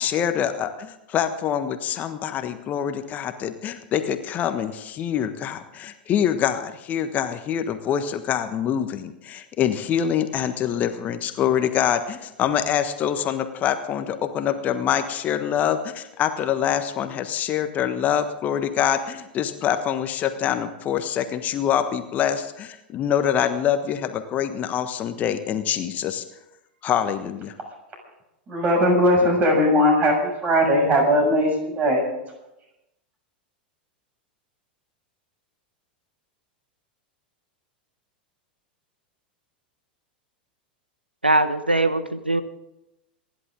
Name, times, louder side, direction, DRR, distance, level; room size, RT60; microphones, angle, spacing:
voice 1, 0.0-26.2 26.8-27.5, left 9 dB, 30° left, 8 dB, 1.3 m, -25 dB
voice 2, 28.5-32.0, equal, 30° right, 1 dB, 6.8 m, -19 dB
voice 3, 41.2-42.4, right 2 dB, 90° right, 11 dB, 1.2 m, -21 dB
27.5 x 11.0 x 3.8 m, 0.90 s
figure-of-eight pair, 90°, 5 cm